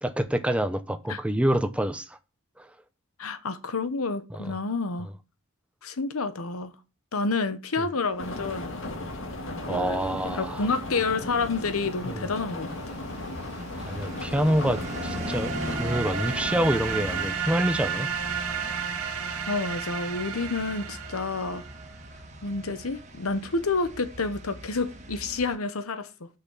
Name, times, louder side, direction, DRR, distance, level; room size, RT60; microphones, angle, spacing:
voice 1, 0.0-2.2 2.6-2.7 4.3-4.5 9.7-10.7 12.1-12.3 13.8-18.1, right 1 dB, 5° right, 0.6 m, -27 dB
voice 2, 3.2-5.1 5.8-6.7 7.1-8.8 9.7-12.8 19.5-21.6 22.4-26.3, left 3 dB, 80° left, 1.0 m, -29 dB
sound 1, 8.2-17.3, left 2 dB, 60° left, 1.8 m, -36 dB
sound 2, 8.9-25.5, equal, 30° right, 1.6 m, -40 dB
sound 3, 14.1-21.9, right 7 dB, 90° right, 1.7 m, -33 dB
6.9 x 5.9 x 7.2 m
head